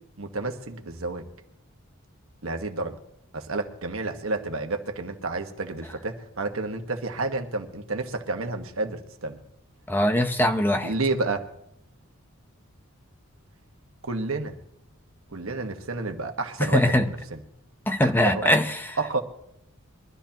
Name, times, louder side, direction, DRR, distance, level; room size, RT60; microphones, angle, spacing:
voice 1, 0.2-1.2 2.4-3.0 3.3-9.4 10.8-11.4 14.0-14.6 15.3-17.4 18.0-18.5 19.0-19.2, right 3 dB, 75° right, 5 dB, 1.4 m, -30 dB
voice 2, 9.9-10.9 16.6-17.1 17.9-19.0, left 1 dB, 10° left, 7 dB, 0.7 m, -22 dB
22.5 x 13.0 x 2.9 m, 0.80 s
head